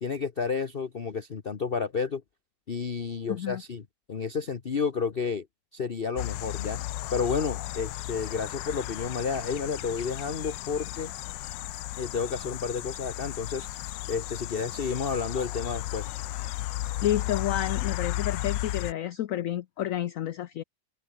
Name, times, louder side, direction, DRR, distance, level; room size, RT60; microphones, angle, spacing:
voice 1, 0.0-2.2 2.7-3.8 4.1-5.5 5.7-6.8 7.1-11.1 12.0-13.7 14.1-16.1, left 5 dB, 35° left, 1.1 m, -31 dB
voice 2, 3.3-3.6 17.0-20.6, left 12 dB, 65° left, 0.8 m, -30 dB
sound 1, 6.2-18.9, left 15 dB, 80° left, 1.4 m, -34 dB
open air
omnidirectional pair, 2.0 m